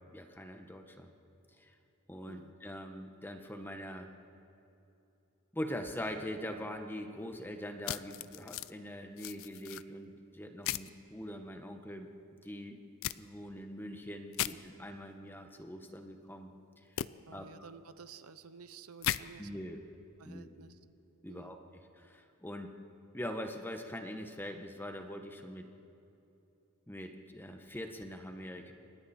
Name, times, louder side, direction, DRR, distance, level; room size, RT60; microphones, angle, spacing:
voice 1, 0.1-1.1 1.6-1.7 2.1-4.1 5.5-12.1 12.4-12.8 13.2-16.5 16.8-16.9 17.3-17.5 19.4-19.8 20.2-20.5 21.2-21.6 22.0-22.7 23.1-25.6 26.9-28.7, equal, 10° left, 5 dB, 1.3 m, -43 dB
sound 1, 7.8-8.7 9.2-9.8 10.6-10.9 13.0-13.2 14.3-14.5 17.0-17.1 19.0-19.2, left 12 dB, 65° left, 0.5 m, -35 dB
voice 2, 17.3-19.5 20.2-20.8 21.3-21.6, right 5 dB, 75° right, 12 dB, 0.9 m, -52 dB
28.5 x 24.5 x 4.4 m, 2.9 s
head